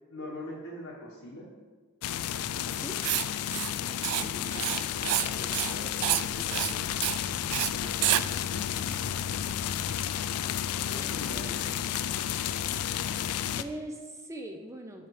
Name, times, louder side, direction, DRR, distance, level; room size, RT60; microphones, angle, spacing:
voice 1, 0.1-1.5 3.7-4.6 5.0-6.9 7.7-9.1 10.9-11.6, left 1 dB, 75° left, -4 dB, 1.1 m, -43 dB
sound 1, 2.0-13.6, left 10 dB, 90° left, 0.3 m, -32 dB
Writing, 3.0-3.2 3.5-3.7 4.0-4.2 4.5-5.3 5.5-5.8 6.0-6.2 6.5-6.7 7.0-7.2 7.5-7.7 8.0-8.2, right 15 dB, 85° right, 0.3 m, -28 dB
voice 2, 4.2-4.8 13.6-15.1, right 1 dB, 15° right, 4 dB, 0.4 m, -41 dB
sound 2, 4.9-10.0, equal, ahead, 1.1 m, -48 dB
7.3 x 4.9 x 4.6 m, 1.4 s
head